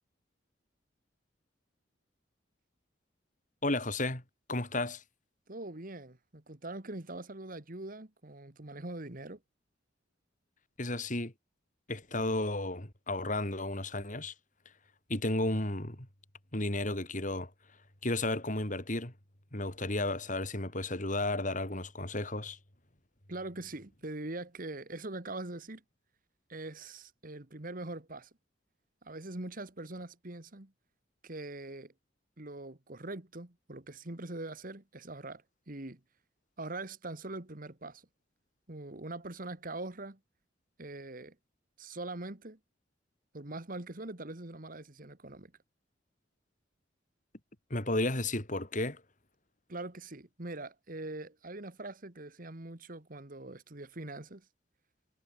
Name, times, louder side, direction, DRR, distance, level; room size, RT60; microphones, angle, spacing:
voice 1, 3.6-4.2 4.5-5.0 10.8-11.3 11.9-14.3 15.1-16.1 16.5-17.5 18.0-19.1 19.5-22.6 47.7-49.0, left 2 dB, 45° left, 3.9 m, -33 dB
voice 2, 5.5-9.4 23.3-25.8 26.5-28.3 29.0-30.7 31.2-31.9 32.4-36.0 36.6-38.1 38.7-40.2 40.8-41.4 41.8-42.6 43.3-45.5 49.7-54.5, right 2 dB, 45° right, 1.8 m, -42 dB
head